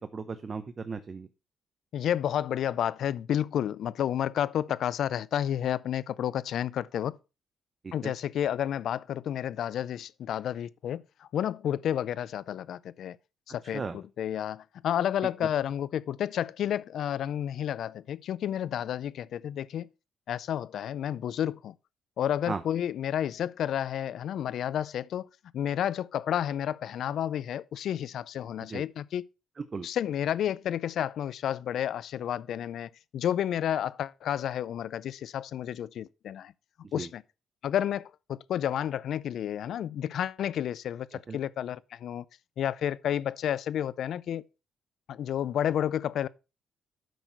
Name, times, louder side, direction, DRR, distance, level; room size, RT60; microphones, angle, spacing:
voice 1, 0.1-1.3 7.8-8.1 13.7-14.0 22.5-22.6 28.7-28.8 29.6-29.9 36.8-37.1 41.3-41.4, right 4 dB, 35° right, 0.8 m, -36 dB
voice 2, 1.9-7.2 7.9-13.2 13.5-19.9 20.3-21.7 22.2-25.3 25.5-29.2 29.8-36.5 36.9-37.2 37.6-42.2 42.6-44.4 45.1-46.3, left 10 dB, 70° left, 0.5 m, -31 dB
9.2 x 6.3 x 4.5 m
cardioid pair, 90°, 0 cm